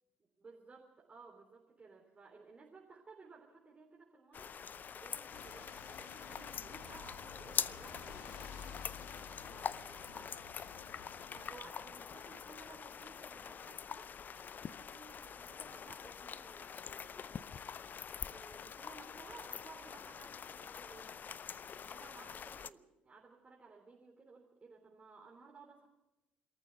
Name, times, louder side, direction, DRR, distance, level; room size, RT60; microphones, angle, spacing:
voice 1, 0.4-4.6 4.9-8.3 9.5-10.7 11.3-14.1 14.6-17.6 18.2-21.2 21.9-25.9, right 4 dB, 25° right, -2 dB, 3.6 m, -57 dB
sound 1, 4.3-22.7, left 7 dB, 35° left, 0.6 m, -45 dB
sound 2, 5.3-11.6, left 6 dB, 60° left, 2.5 m, -53 dB
22.0 x 14.0 x 8.3 m, 0.98 s
figure-of-eight pair, 55°, 5 cm